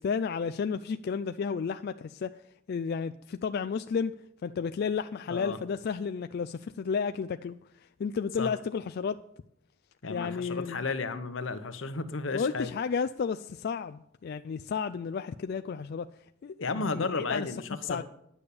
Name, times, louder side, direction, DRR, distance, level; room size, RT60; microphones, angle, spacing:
voice 1, 0.0-2.3 2.7-4.1 4.4-7.6 8.0-9.2 10.1-10.9 12.3-16.1 16.4-17.5 17.9-18.0, left 6 dB, 55° left, 10 dB, 0.3 m, -32 dB
voice 2, 10.0-12.7 16.6-18.0, left 3 dB, 80° left, 10 dB, 1.0 m, -33 dB
9.8 x 6.9 x 8.4 m, 0.79 s
head